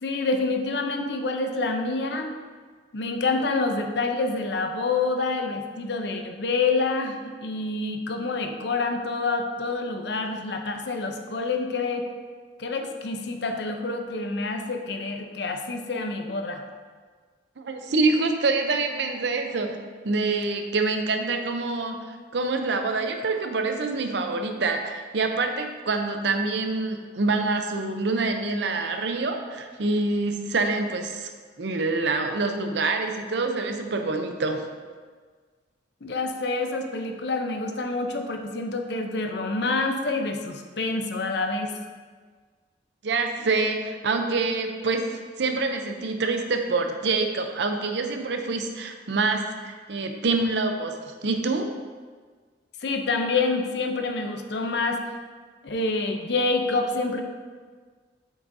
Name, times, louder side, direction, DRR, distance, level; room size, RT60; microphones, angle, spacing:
voice 1, 0.0-2.4 2.9-12.0 12.6-16.6 36.0-41.7 52.8-55.0 55.6-57.2, left 3 dB, 65° left, 5 dB, 0.6 m, -27 dB
voice 2, 17.6-31.3 31.6-34.6 43.0-51.7, right 3 dB, 65° right, 5 dB, 0.6 m, -26 dB
7.8 x 6.0 x 2.7 m, 1.5 s
head